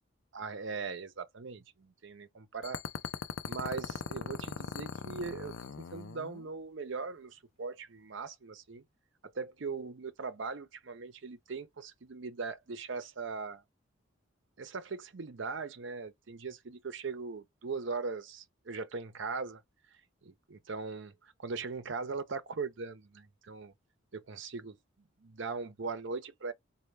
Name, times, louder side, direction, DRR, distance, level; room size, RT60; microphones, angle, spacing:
voice 1, 0.3-2.8 3.4-8.8 9.2-13.6 14.6-19.6 19.9-23.7 24.1-24.8 25.4-26.5, right 4 dB, 65° right, 0.6 m, -40 dB
sound 1, 2.6-6.5, left 6 dB, 70° left, 0.4 m, -40 dB
4.3 x 2.1 x 3.3 m
head